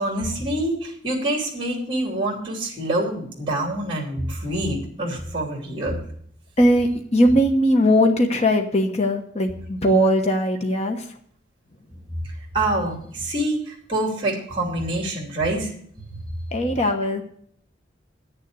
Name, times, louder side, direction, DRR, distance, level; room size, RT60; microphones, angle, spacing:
voice 1, 0.0-5.9 12.2-15.7 16.1-16.2, right 1 dB, 25° right, -1 dB, 2.9 m, -26 dB
voice 2, 6.6-11.0 16.5-17.2, equal, 35° left, 4 dB, 1.1 m, -19 dB
10.0 x 6.8 x 7.8 m, 0.63 s
head